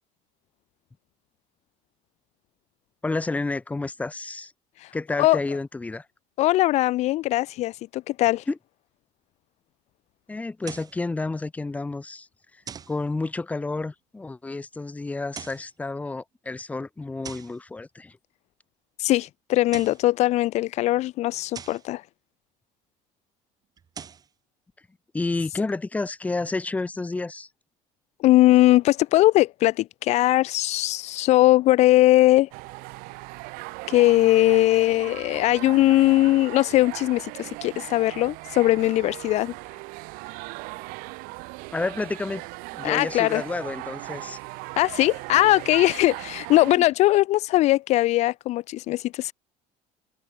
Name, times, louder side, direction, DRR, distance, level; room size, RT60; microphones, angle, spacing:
voice 1, 3.0-4.5 4.9-6.1 8.5-8.6 10.3-12.3 12.5-12.6 12.9-18.2 25.1-27.5 41.7-42.5 42.7-44.4 46.8-46.9, left 3 dB, 10° left, 1.8 m, -30 dB
voice 2, 6.4-8.4 19.0-22.0 28.2-32.5 33.9-39.5 42.8-43.4 44.8-49.3, left 16 dB, 50° left, 0.7 m, -20 dB
sound 1, 10.6-11.0 12.7-13.0 15.2-15.7 17.2-17.6 19.5-20.1 21.5-21.9 23.8-24.3, right 7 dB, 25° right, 4.5 m, -41 dB
sound 2, 32.5-46.8, right 26 dB, 80° right, 3.6 m, -38 dB
cardioid pair, 165°, 15 cm